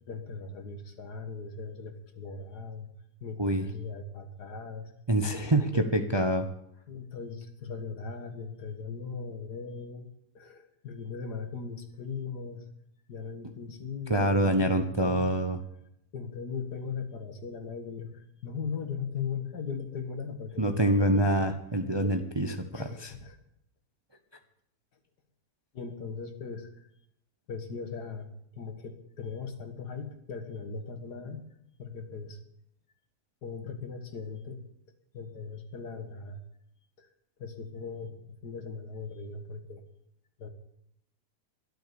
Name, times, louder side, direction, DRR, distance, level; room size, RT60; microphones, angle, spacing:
voice 1, 0.1-2.9 3.2-4.9 5.3-5.9 6.9-10.1 10.3-12.6 13.1-15.4 16.1-21.5 22.0-22.2 22.7-23.4 25.7-26.9 27.5-31.4 31.8-32.4 33.4-34.6 35.1-36.4 37.0-37.1 37.4-39.8 40.4-40.5, left 5 dB, 75° left, 7 dB, 2.2 m, -39 dB
voice 2, 5.1-6.5 14.1-15.6 20.6-22.5 22.8-23.1, right 1 dB, 20° right, 7 dB, 0.8 m, -26 dB
12.5 x 12.0 x 7.0 m, 0.76 s
omnidirectional pair, 1.7 m